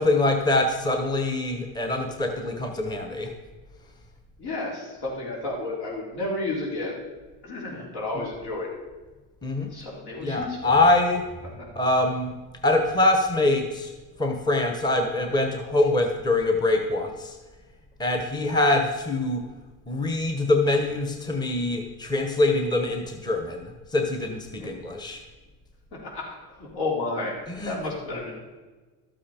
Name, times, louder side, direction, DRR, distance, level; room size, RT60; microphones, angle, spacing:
voice 1, 0.0-3.3 9.4-9.7 10.2-11.3 11.7-12.3 12.6-13.9 14.2-17.4 18.0-19.4 19.9-25.2 27.6-27.8, left 2 dB, 10° left, 4 dB, 1.0 m, -24 dB
voice 2, 4.4-7.0 7.4-8.7 9.7-10.6 11.6-11.8 24.6-24.7 26.0-28.3, left 2 dB, 70° left, -3 dB, 3.9 m, -32 dB
12.5 x 7.5 x 4.4 m, 1.3 s
cardioid pair, 115°, 38 cm